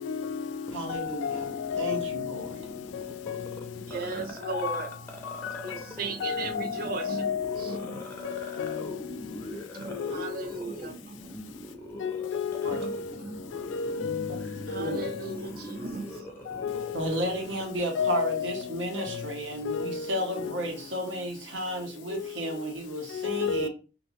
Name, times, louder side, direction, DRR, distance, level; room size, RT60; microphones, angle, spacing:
voice 1, 0.0-2.5 2.9-3.6 4.4-4.8 5.4-5.8 6.2-7.9 8.2-9.0 10.0-10.3 12.0-13.1 13.5-15.2 16.5-17.0 18.0-18.6 19.0-19.3 19.7-20.5 22.1-22.3 23.1-23.7, left 7 dB, 75° left, 0.3 m, -32 dB
sound 1, 0.7-17.9, left 1 dB, 10° left, 0.5 m, -43 dB
voice 2, 0.7-1.4 1.8-2.6 12.6-12.8 14.3-14.4 14.8-15.0 16.9-23.7, right 1 dB, 80° right, 0.9 m, -33 dB
voice 3, 3.8-4.9 5.3-7.3 7.6-8.2 8.8-8.9 9.3-12.1 12.7-12.9 13.2-13.5 14.6-16.5 17.4-17.6, right 3 dB, 50° right, 0.5 m, -38 dB
3.0 x 2.7 x 3.0 m
head